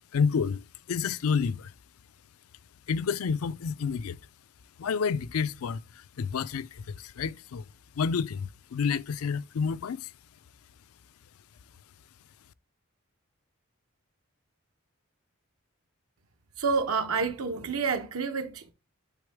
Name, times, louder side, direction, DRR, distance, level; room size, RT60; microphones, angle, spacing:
voice 1, 0.1-1.7 2.9-4.2 4.8-7.6 8.0-10.1, left 6 dB, 85° left, 0.4 m, -29 dB
voice 2, 16.6-18.7, right 5 dB, 85° right, 0.9 m, -29 dB
8.2 x 3.8 x 3.4 m
head